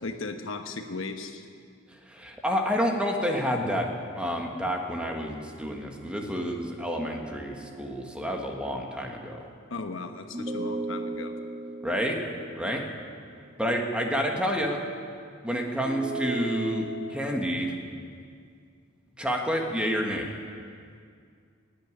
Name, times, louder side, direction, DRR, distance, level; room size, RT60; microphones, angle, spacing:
voice 1, 0.0-1.5 9.7-11.3, left 3 dB, 70° left, 6 dB, 1.1 m, -36 dB
voice 2, 2.1-3.9 4.1-9.4 11.8-12.2 12.5-12.8 13.6-14.8 15.4-17.7 19.2-20.3, equal, 5° right, 1 dB, 1.6 m, -29 dB
sound 1, 6.8-8.3 10.3-13.5 15.8-17.2, right 2 dB, 30° right, 1.6 m, -37 dB
16.0 x 9.2 x 9.8 m, 2.2 s
head